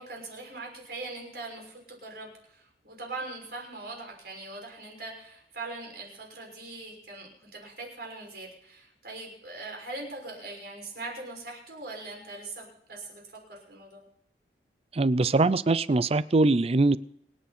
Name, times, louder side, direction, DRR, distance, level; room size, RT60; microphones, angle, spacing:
voice 1, 0.0-13.2 13.5-14.0, right 2 dB, 60° right, 0 dB, 6.1 m, -41 dB
voice 2, 14.9-17.0, right 2 dB, 35° right, 17 dB, 0.5 m, -22 dB
27.5 x 9.6 x 4.3 m, 0.74 s
head